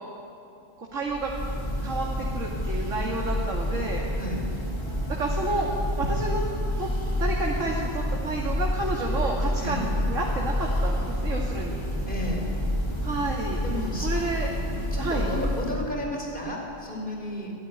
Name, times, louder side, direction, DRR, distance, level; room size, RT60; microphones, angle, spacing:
voice 1, 0.9-1.3 1.8-4.0 5.1-5.7 6.0-6.4 6.8-6.9 7.2-11.8 13.0-13.6 14.0-14.5 15.0-15.3, right 2 dB, 70° right, -2 dB, 2.8 m, -30 dB
Church bell, 1.0-16.0, equal, 20° left, 3.4 m, -29 dB
voice 2, 12.1-12.5 13.6-14.1 14.9-17.5, left 1 dB, 40° left, 0 dB, 5.3 m, -32 dB
25.5 x 16.5 x 9.9 m, 2.8 s
omnidirectional pair, 1.4 m